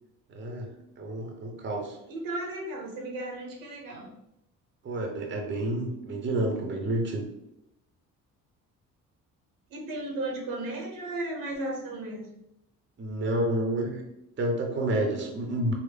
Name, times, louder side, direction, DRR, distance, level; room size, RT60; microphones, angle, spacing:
voice 1, 0.3-2.0 4.8-7.3 13.0-14.0 14.4-15.7, right 1 dB, 35° right, 2 dB, 0.7 m, -29 dB
voice 2, 2.1-4.1 9.7-12.3, right 2 dB, 80° right, 0 dB, 0.8 m, -35 dB
3.4 x 2.0 x 3.3 m, 0.84 s
cardioid pair, 85°, 34 cm